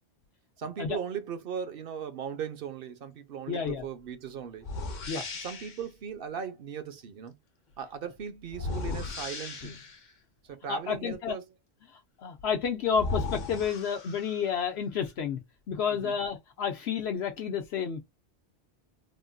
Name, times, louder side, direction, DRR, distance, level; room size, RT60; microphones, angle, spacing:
voice 1, 0.6-4.7 5.2-7.3 7.8-9.8 10.4-11.5 15.9-16.2, right 7 dB, 60° right, 0.9 m, -38 dB
voice 2, 3.5-3.8 5.1-5.2 10.7-11.4 12.2-15.4 15.7-18.0, left 7 dB, 75° left, 0.9 m, -30 dB
sound 1, 3.7-3.8 4.6-5.9 8.5-10.1 12.4-12.5 12.9-14.5, left 3 dB, 50° left, 0.8 m, -36 dB
3.6 x 2.5 x 2.3 m
omnidirectional pair, 1.1 m